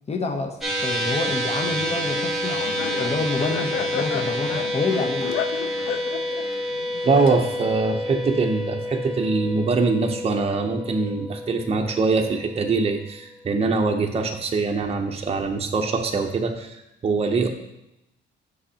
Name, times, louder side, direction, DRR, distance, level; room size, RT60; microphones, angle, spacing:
voice 1, 0.1-2.6 2.9-5.3, left 3 dB, 30° left, 4 dB, 0.8 m, -28 dB
sound 1, 0.6-13.1, equal, ahead, 1.4 m, -29 dB
Laughter, 1.9-7.8, left 9 dB, 85° left, 0.4 m, -33 dB
voice 2, 7.0-17.5, right 4 dB, 30° right, 3 dB, 0.7 m, -23 dB
7.7 x 6.3 x 2.8 m, 0.86 s
cardioid pair, 90°, 20 cm